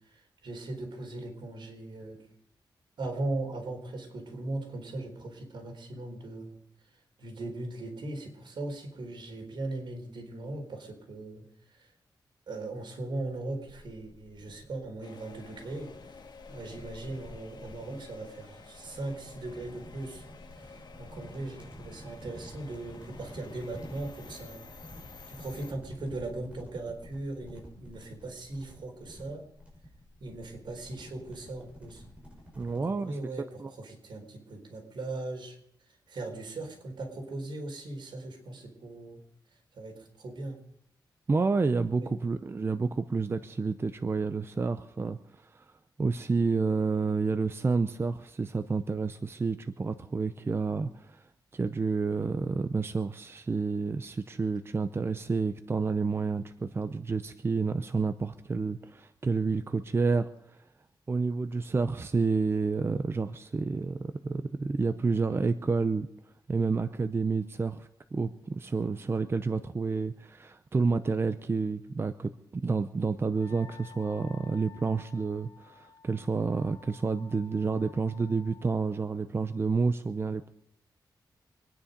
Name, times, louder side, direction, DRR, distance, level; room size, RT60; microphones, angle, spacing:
voice 1, 0.1-2.2 3.0-6.6 7.2-11.4 11.7-11.9 12.5-15.9 16.5-20.3 20.5-24.7 25.3-29.4 30.2-32.0 32.7-35.6 36.1-39.2 39.7-40.6 42.0-42.2, right 2 dB, 75° right, 2 dB, 4.1 m, -39 dB
sound 1, 13.6-32.9, left 1 dB, 15° right, 6.1 m, -50 dB
sound 2, 15.0-25.7, left 5 dB, 65° left, 1.5 m, -51 dB
voice 2, 32.5-33.2 33.6-33.7 41.3-45.7 46.0-51.2 51.5-60.3 61.1-66.1 66.5-80.5, right 4 dB, 30° right, 10 dB, 0.6 m, -29 dB
Wind instrument woodwind instrument, 73.3-78.9, left 6 dB, 90° left, 2.4 m, -53 dB
25.5 x 10.0 x 5.2 m, 0.75 s
wide cardioid pair, 135°, 8 cm